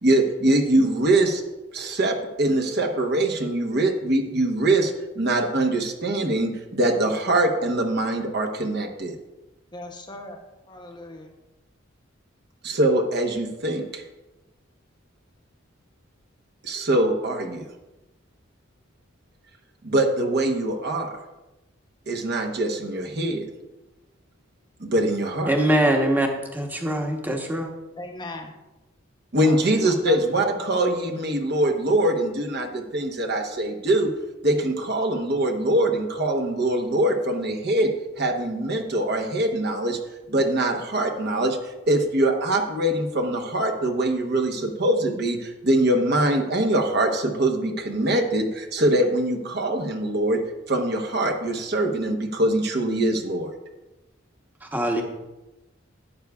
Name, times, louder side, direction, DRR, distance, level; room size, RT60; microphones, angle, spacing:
voice 1, 0.0-1.4 1.7-9.1 12.6-14.0 16.6-17.7 19.8-21.2 22.1-23.5 24.8-25.5 29.3-34.1 34.4-37.9 38.2-40.0 40.3-50.4 50.7-53.5, right 1 dB, 55° right, 2 dB, 1.0 m, -23 dB
voice 2, 9.7-10.4 10.7-11.3 28.0-28.5 29.4-29.6 30.1-30.2, left 2 dB, 25° left, 3 dB, 0.7 m, -38 dB
voice 3, 25.5-26.3 26.5-27.7 54.7-55.0, right 1 dB, 10° right, 2 dB, 1.0 m, -22 dB
12.0 x 9.4 x 2.3 m, 1.0 s
head